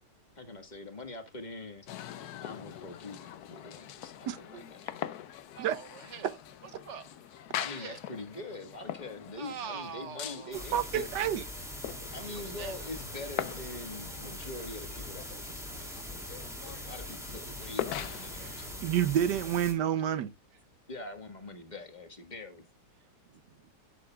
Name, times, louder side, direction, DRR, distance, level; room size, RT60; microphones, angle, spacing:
voice 1, 0.3-1.9 2.4-5.0 7.6-11.1 12.1-18.9 20.9-22.6, left 2 dB, 25° left, 1.7 m, -44 dB
sound 1, 1.9-18.7, left 11 dB, 70° left, 1.2 m, -43 dB
voice 2, 4.3-4.6 5.6-5.8 10.7-11.4 18.8-20.3, right 10 dB, 85° right, 1.5 m, -29 dB
voice 3, 5.6-6.4 6.8-7.1 7.7-8.0 9.3-10.6 12.1-12.7 15.7-15.8 18.3-18.7 23.3-23.7, right 7 dB, 50° right, 1.0 m, -44 dB
sound 2, 10.5-19.7, left 1 dB, ahead, 2.6 m, -42 dB
10.5 x 9.8 x 2.4 m
omnidirectional pair, 1.8 m